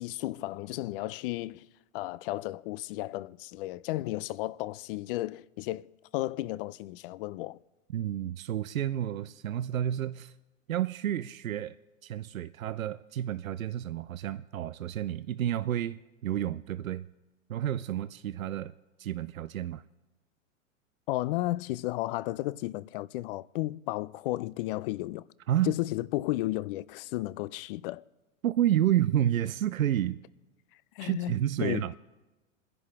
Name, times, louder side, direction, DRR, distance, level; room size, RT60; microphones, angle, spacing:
voice 1, 0.0-1.7 1.9-5.9 6.1-7.6 21.1-25.3 25.7-28.0 31.0-31.9, left 17 dB, 45° left, 0.5 m, -33 dB
voice 2, 7.9-10.3 10.7-11.8 12.0-17.1 17.5-19.8 25.5-25.7 28.4-30.2 31.0-31.9, right 11 dB, 85° right, 0.6 m, -30 dB
28.5 x 11.0 x 3.7 m
hypercardioid pair, 105°, 40 cm